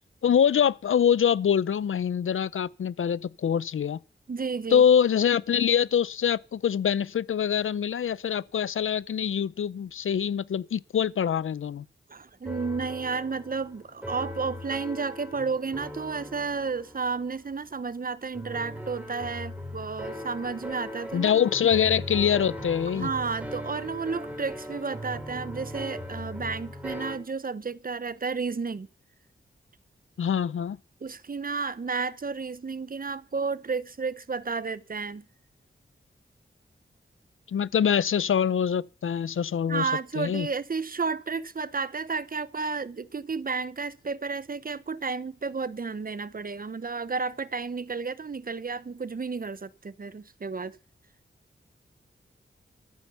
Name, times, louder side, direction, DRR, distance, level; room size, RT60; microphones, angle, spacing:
voice 1, 0.2-4.0 4.7-11.8 21.1-23.1 30.2-30.8 37.5-39.9 40.2-40.5, left 8 dB, 85° left, 0.6 m, -24 dB
voice 2, 4.3-4.8 12.1-21.5 22.9-28.9 31.0-35.2 39.7-50.8, right 4 dB, 45° right, 0.9 m, -32 dB
sound 1, 12.4-27.2, left 1 dB, 5° right, 5.5 m, -39 dB
13.5 x 9.6 x 7.0 m
wide cardioid pair, 95°, 20 cm